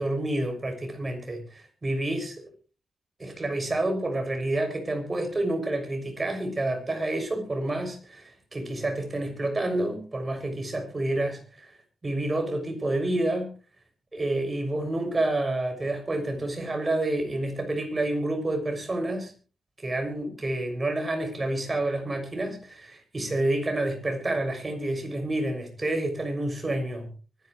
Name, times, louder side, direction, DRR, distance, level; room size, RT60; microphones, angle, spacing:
voice 1, 0.0-2.4 3.2-11.7 12.0-13.5 14.1-19.3 19.8-27.1, right 1 dB, 30° right, 5 dB, 6.4 m, -29 dB
24.0 x 11.0 x 3.2 m, 0.34 s
cardioid pair, 65°, 0 cm